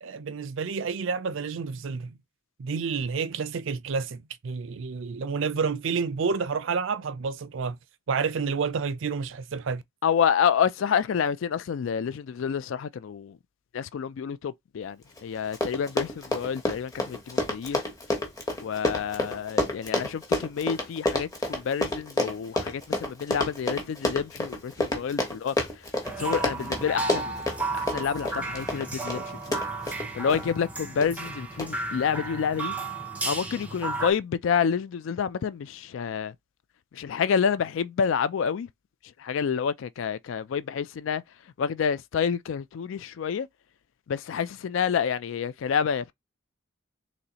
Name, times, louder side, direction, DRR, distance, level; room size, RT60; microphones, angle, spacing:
voice 1, 0.0-2.2 2.6-7.8 8.1-9.8, right 5 dB, 65° right, 0.4 m, -29 dB
voice 2, 10.0-13.4 13.7-17.8 18.6-25.6 26.2-29.4 30.1-32.7 33.2-36.3 36.9-38.7 39.2-41.2 41.6-43.5 44.1-46.1, left 7 dB, 70° left, 0.3 m, -28 dB
Run, 15.2-15.3 15.5-30.4 31.0-31.3 31.6-31.7, left 2 dB, 15° left, 1.0 m, -29 dB
sound 1, 26.0-34.1, right 3 dB, 5° right, 0.6 m, -33 dB
4.0 x 3.1 x 2.9 m
head